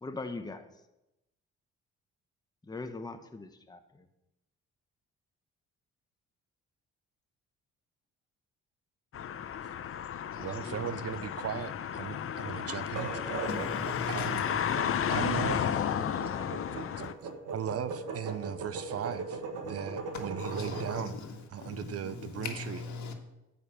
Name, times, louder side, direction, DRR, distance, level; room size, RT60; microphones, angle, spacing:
voice 1, 0.0-0.7 2.6-4.1 10.4-11.0 14.9-16.6, left 3 dB, 15° left, 7 dB, 0.9 m, -42 dB
sound 1, 9.1-17.1, left 9 dB, 45° left, 0.6 m, -33 dB
voice 2, 10.4-13.2 14.1-14.5 15.1-15.7 17.5-21.2 21.5-22.8, right 9 dB, 50° right, 13 dB, 0.7 m, -37 dB
sound 2, 12.8-21.0, right 4 dB, 85° right, 1.6 m, -39 dB
voice 3, 13.5-14.4 20.1-23.1, left 4 dB, 70° left, 4 dB, 1.7 m, -40 dB
9.4 x 5.3 x 7.5 m, 0.93 s
cardioid pair, 90°, 30 cm